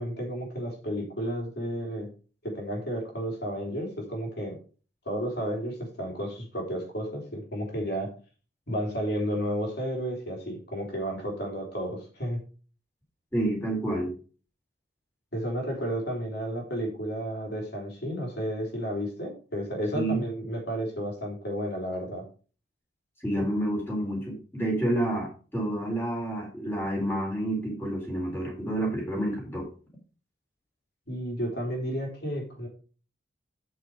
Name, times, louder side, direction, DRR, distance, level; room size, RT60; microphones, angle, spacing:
voice 1, 0.0-2.1 2.4-4.6 5.0-8.1 8.7-12.4 15.3-22.2 31.1-32.7, equal, 50° left, 0 dB, 3.5 m, -32 dB
voice 2, 13.3-14.1 19.9-20.2 23.2-29.7, right 1 dB, 10° left, -1 dB, 3.7 m, -29 dB
8.2 x 6.1 x 4.8 m, 0.38 s
head